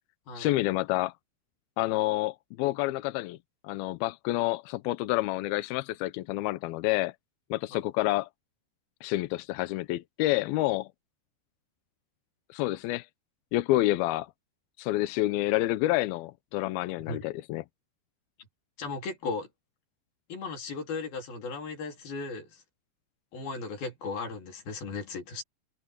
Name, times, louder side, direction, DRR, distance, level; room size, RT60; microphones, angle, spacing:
voice 1, 0.4-1.1 1.8-3.4 3.6-7.1 7.5-8.3 9.0-10.9 12.5-13.1 13.5-14.3 14.8-17.6, left 17 dB, 80° left, 2.3 m, -28 dB
voice 2, 18.8-19.5 20.3-22.6 23.3-25.4, left 4 dB, 60° left, 5.6 m, -36 dB
omnidirectional pair, 5.0 m